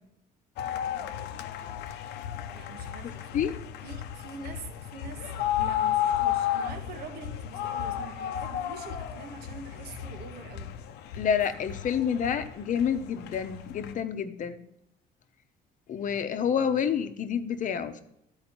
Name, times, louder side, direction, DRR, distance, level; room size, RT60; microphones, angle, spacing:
sound 1, 0.6-13.9, left 11 dB, 80° left, 0.6 m, -33 dB
voice 1, 2.5-3.5 3.8-10.8, right 4 dB, 70° right, 5 dB, 1.3 m, -44 dB
voice 2, 11.2-14.6 15.9-18.0, left 7 dB, 50° left, 9 dB, 0.8 m, -28 dB
12.5 x 4.9 x 4.4 m, 0.78 s
cardioid pair, 110°, 17 cm